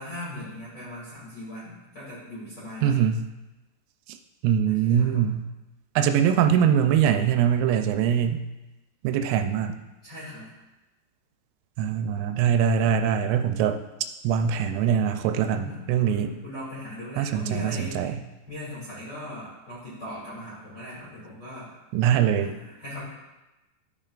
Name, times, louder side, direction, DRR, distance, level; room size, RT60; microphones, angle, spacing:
voice 1, 0.0-3.0 4.7-5.3 10.0-10.5 15.5-18.0 18.5-21.7 22.4-23.0, equal, 30° left, -11 dB, 2.2 m, -39 dB
voice 2, 2.8-3.2 4.4-5.5 6.0-8.4 9.0-9.8 11.8-13.8 14.2-16.3 17.2-18.2 21.9-22.6, right 8 dB, 85° right, 7 dB, 3.1 m, -23 dB
13.5 x 5.3 x 2.4 m, 1.0 s
omnidirectional pair, 5.7 m